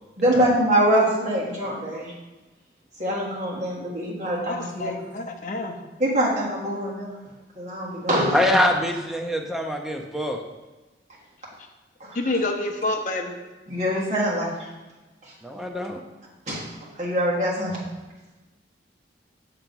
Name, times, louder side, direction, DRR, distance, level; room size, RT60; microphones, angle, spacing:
voice 1, 0.2-2.1 3.0-4.9 6.0-7.1 7.5-8.5 12.0-12.3 13.7-14.5 15.2-15.3 16.5-17.8, right 1 dB, 40° right, -5 dB, 1.5 m, -24 dB
voice 2, 4.5-5.8 12.1-13.4, left 2 dB, 45° left, 4 dB, 0.6 m, -28 dB
voice 3, 8.3-10.4 15.4-16.0, left 1 dB, ahead, 2 dB, 0.5 m, -24 dB
6.6 x 3.0 x 5.2 m, 1.2 s
head